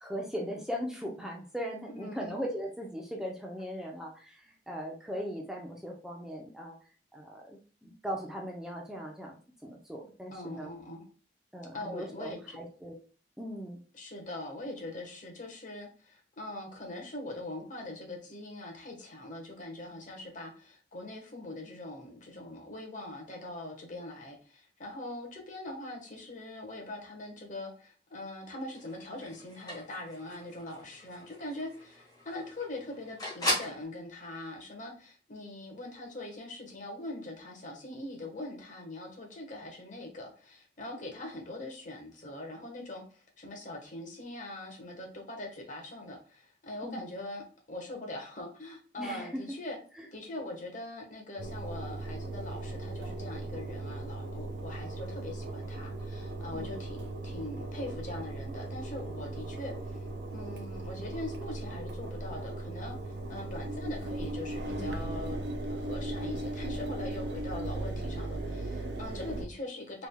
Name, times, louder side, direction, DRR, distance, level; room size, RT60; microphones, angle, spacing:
voice 1, 0.0-6.8 7.1-10.7 11.5-12.9 13.4-13.8 46.8-47.0 49.0-49.4 50.0-50.1 56.5-56.8, equal, 5° right, 0 dB, 0.6 m, -39 dB
voice 2, 1.9-2.4 10.3-11.0 11.7-12.6 13.9-49.8 50.1-70.1, left 1 dB, 45° left, 1 dB, 1.2 m, -42 dB
sound 1, 28.7-33.8, left 1 dB, 25° left, 1.6 m, -38 dB
Engine, 51.4-69.5, right 2 dB, 75° right, 0.9 m, -37 dB
5.0 x 3.4 x 2.2 m, 0.40 s
head